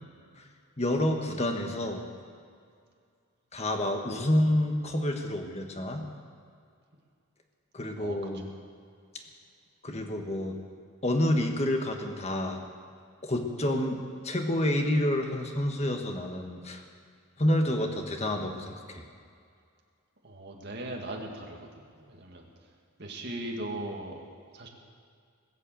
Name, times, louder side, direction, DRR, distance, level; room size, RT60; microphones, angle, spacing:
voice 1, 0.8-2.1 3.5-6.0 7.7-8.5 9.8-10.6 11.0-12.6 13.2-16.8 17.4-19.0, left 1 dB, 30° left, 3 dB, 1.5 m, -28 dB
voice 2, 20.2-22.5 23.0-24.2 24.5-24.7, right 1 dB, 50° right, 1 dB, 2.1 m, -38 dB
20.5 x 7.8 x 7.7 m, 2.2 s
head